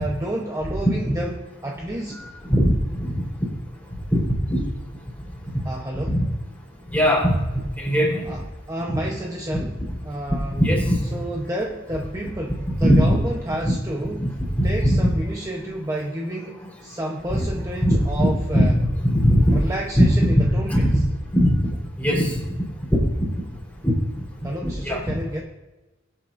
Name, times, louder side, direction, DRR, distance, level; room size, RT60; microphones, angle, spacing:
voice 1, 0.0-2.2 5.6-6.2 8.2-10.6 11.1-14.4 14.6-18.8 19.5-21.0 24.4-25.4, right 1 dB, 15° right, 0 dB, 0.9 m, -30 dB
voice 2, 2.5-3.1 4.1-4.2 4.5-4.6 6.1-6.2 6.9-7.3 7.8-8.2 10.6-11.0 12.8-13.1 13.6-13.7 14.2-14.3 14.6-14.7 17.8-18.3 18.5-18.6 19.0-19.6 20.0-20.1 20.7-21.0 21.3-21.5 22.0-22.3 23.8-23.9 24.6-25.0, equal, 10° left, -3 dB, 4.2 m, -19 dB
23.0 x 8.4 x 2.6 m, 1.1 s
head